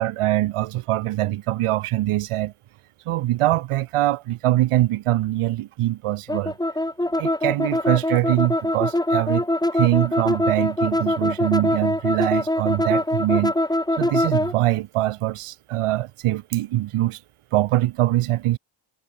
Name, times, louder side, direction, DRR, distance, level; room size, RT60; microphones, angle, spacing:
voice 1, 0.0-2.5 3.1-6.6 7.2-9.5 9.7-13.5 14.0-17.2 17.5-18.6, right 15 dB, 85° right, 2.0 m, -23 dB
sound 1, 6.3-14.5, left 1 dB, 10° left, 7.8 m, -23 dB
cardioid pair, 100°, 50 cm